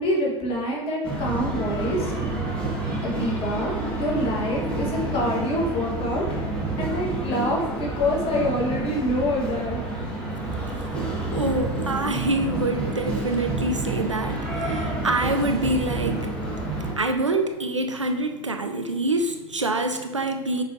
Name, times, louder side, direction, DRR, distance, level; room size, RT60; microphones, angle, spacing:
voice 1, 0.0-2.1 3.0-6.4 6.8-9.8, left 1 dB, 40° left, -2 dB, 1.8 m, -26 dB
sound 1, 1.0-16.9, right 2 dB, 5° left, 1.9 m, -29 dB
voice 2, 10.5-16.4 16.8-20.6, right 2 dB, 90° right, 6 dB, 0.5 m, -26 dB
6.6 x 5.1 x 2.9 m, 1.1 s
figure-of-eight pair, 70°, 15 cm